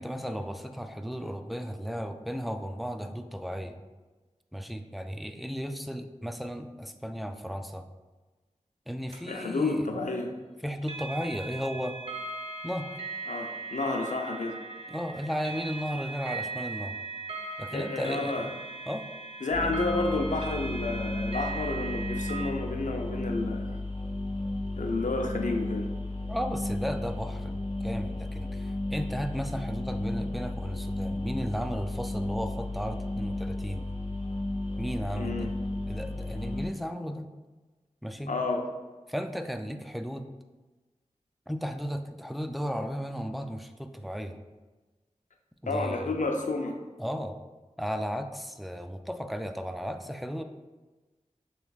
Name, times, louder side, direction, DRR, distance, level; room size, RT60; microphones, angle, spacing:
voice 1, 0.0-3.9 4.5-7.8 8.9-10.1 10.6-12.0 12.6-13.0 14.9-17.0 17.6-18.5 18.9-19.0 26.3-33.8 34.8-35.5 35.9-37.3 38.0-38.3 39.1-40.3 41.5-44.4 45.6-46.2 47.0-47.4 47.8-50.4, equal, ahead, 7 dB, 0.3 m, -35 dB
sound 1, 9.1-9.2 10.8-22.5, right 3 dB, 50° right, 0.6 m, -39 dB
voice 2, 9.3-10.3 13.3-14.6 17.7-18.5 19.4-23.8 24.8-25.9 35.1-35.5 38.3-38.7 45.7-46.8, left 3 dB, 75° left, 3 dB, 0.6 m, -30 dB
sound 2, 19.5-36.7, left 2 dB, 40° left, 0.8 m, -33 dB
6.6 x 3.1 x 2.4 m, 1.2 s
wide cardioid pair, 60°, 13 cm